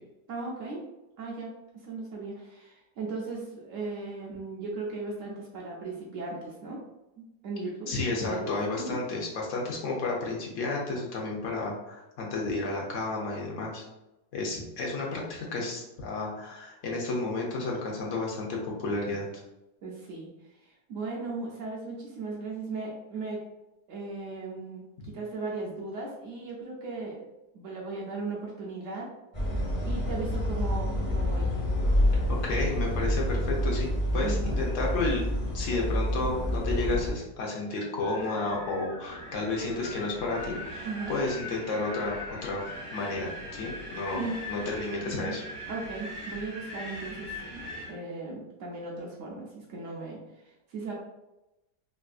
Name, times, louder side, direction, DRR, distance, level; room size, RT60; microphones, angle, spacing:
voice 1, 0.3-0.8 1.2-1.5 1.8-6.8 7.2-7.9 8.2-8.5 8.8-9.0 19.8-23.4 23.9-27.3 27.5-29.1 29.5-31.6 34.2-34.6 34.9-35.0 40.8-41.2 44.1-44.4 45.2-45.4 45.7-47.6 47.9-50.9, right 3 dB, 70° right, -3 dB, 0.7 m, -37 dB
voice 2, 7.9-13.8 14.3-19.3 32.3-35.3 35.5-42.6 42.9-45.4, left 3 dB, 60° left, -2 dB, 0.9 m, -32 dB
sound 1, 29.3-37.1, equal, 30° left, 0.6 m, -28 dB
Wind, 38.0-47.9, left 1 dB, 40° right, 1.3 m, -41 dB
3.3 x 2.5 x 2.3 m, 0.96 s
omnidirectional pair, 1.9 m